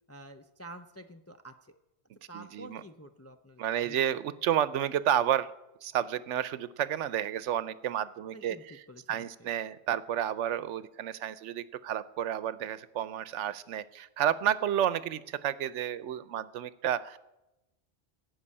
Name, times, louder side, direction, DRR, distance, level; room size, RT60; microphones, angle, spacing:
voice 1, 0.1-1.7 2.3-4.1 8.3-9.5, right 1 dB, 25° left, 6 dB, 0.3 m, -49 dB
voice 2, 2.3-2.8 3.6-5.5 5.8-8.8 9.1-17.2, right 10 dB, 85° right, 16 dB, 0.9 m, -31 dB
16.5 x 5.5 x 8.6 m, 0.95 s
omnidirectional pair, 1.2 m